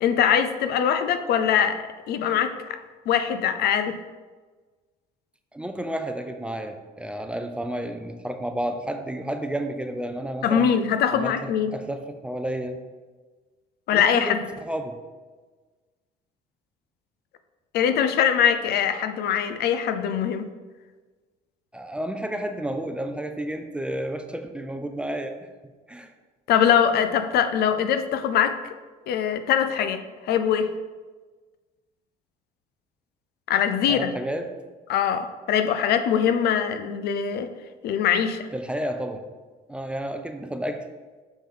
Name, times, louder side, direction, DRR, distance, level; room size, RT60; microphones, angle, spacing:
voice 1, 0.0-2.8 3.1-4.0 10.4-11.7 13.9-14.4 17.7-20.5 26.5-28.6 29.1-30.7 33.5-34.1 34.9-37.5 37.8-38.5, left 8 dB, 70° left, 9 dB, 0.6 m, -22 dB
voice 2, 5.5-10.7 11.1-12.8 13.9-15.0 21.7-25.3 25.9-26.1 33.9-34.5 38.5-39.3 39.7-40.9, right 1 dB, 5° right, 6 dB, 0.6 m, -31 dB
7.1 x 5.2 x 3.8 m, 1.3 s
cardioid pair, 110°, 17 cm